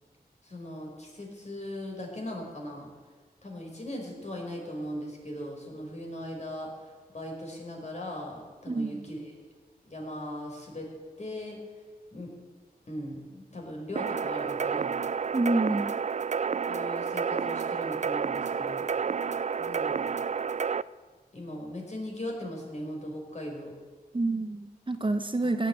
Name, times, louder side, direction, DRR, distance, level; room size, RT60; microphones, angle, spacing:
voice 1, 0.4-2.9 3.4-6.7 7.1-9.3 9.9-11.6 12.1-12.3 12.9-14.9 15.6-15.8 16.7-18.9 19.6-20.1 21.3-23.7 25.4-25.5, left 1 dB, 45° left, 0 dB, 5.0 m, -39 dB
voice 2, 8.7-9.0 15.3-15.9 24.1-25.7, right 2 dB, 30° right, 7 dB, 1.1 m, -28 dB
sound 1, 14.0-20.8, right 6 dB, 45° right, 0.4 m, -30 dB
17.0 x 9.2 x 9.0 m, 1.5 s
wide cardioid pair, 75°, 16 cm